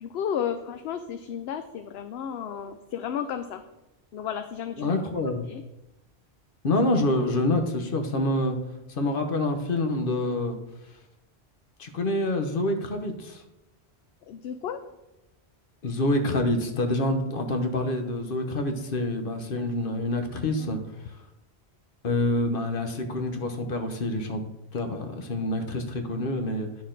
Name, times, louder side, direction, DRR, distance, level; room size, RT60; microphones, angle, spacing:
voice 1, 0.0-3.6 4.1-5.0 5.5-5.6 6.7-6.8 14.3-14.8 20.4-20.8, left 8 dB, 70° left, 8 dB, 0.8 m, -33 dB
voice 2, 4.8-5.5 6.6-8.6 8.9-10.6 11.8-13.4 15.8-20.8 22.0-24.4 24.7-26.7, left 1 dB, 55° left, 6 dB, 1.2 m, -27 dB
11.0 x 6.5 x 3.9 m, 0.97 s
omnidirectional pair, 1.1 m